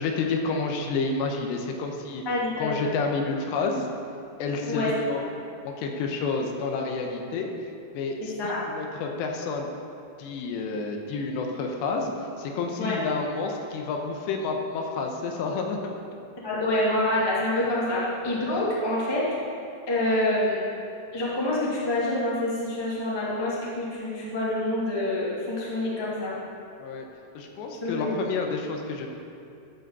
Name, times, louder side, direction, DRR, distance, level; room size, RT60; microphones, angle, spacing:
voice 1, 0.0-2.2 2.6-3.9 4.4-5.2 5.6-7.5 7.9-9.7 10.2-12.1 12.4-15.9 26.8-27.1 27.3-29.1, left 4 dB, 80° left, 2 dB, 3.0 m, -29 dB
voice 2, 2.2-2.9 4.7-4.9 8.2-8.6 12.8-13.0 16.4-19.2 19.9-20.6 21.1-26.3 27.8-28.1, left 1 dB, 30° left, -7 dB, 0.4 m, -27 dB
13.5 x 5.1 x 6.6 m, 2.6 s
omnidirectional pair, 5.1 m